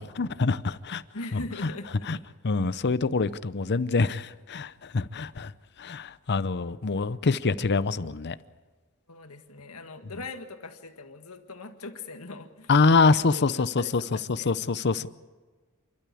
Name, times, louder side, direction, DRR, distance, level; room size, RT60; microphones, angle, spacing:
voice 1, 0.0-1.0 1.3-1.4 2.1-2.2 2.4-5.5 5.8-8.4 12.7-15.1, left 4 dB, 50° left, 0.7 m, -25 dB
voice 2, 1.1-2.1 9.1-12.7 13.0-15.1, left 3 dB, 75° left, 1.8 m, -41 dB
28.5 x 12.5 x 8.5 m
head